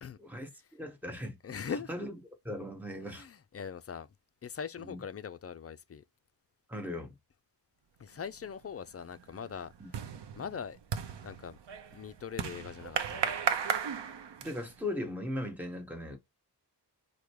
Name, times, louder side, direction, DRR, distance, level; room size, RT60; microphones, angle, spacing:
voice 1, 0.2-1.4 1.9-2.1 2.4-3.3 4.8-5.0 6.7-7.2 9.8-9.9 14.4-16.2, left 1 dB, 5° right, 1.3 m, -38 dB
voice 2, 1.1-1.9 3.0-4.1 4.4-6.0 8.0-9.7 10.4-10.8 11.2-11.6 11.9-13.3, left 6 dB, 35° left, 0.4 m, -41 dB
sound 1, 8.3-8.7 9.0-14.8, right 7 dB, 80° right, 0.7 m, -35 dB
5.0 x 2.2 x 4.6 m
wide cardioid pair, 100°, 42 cm